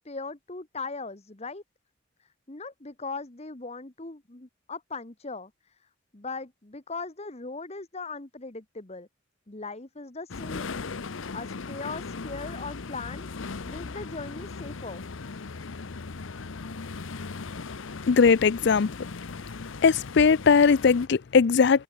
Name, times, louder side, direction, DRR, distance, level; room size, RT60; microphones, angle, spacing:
voice 1, 0.0-1.6 2.2-5.7 6.1-9.1 9.5-10.8 11.3-13.3 13.7-15.0, left 3 dB, 30° left, 1.3 m, -39 dB
sound 1, 10.3-21.1, left 4 dB, 75° left, 0.8 m, -38 dB
voice 2, 18.1-19.1 19.8-21.8, left 5 dB, 55° left, 0.4 m, -20 dB
head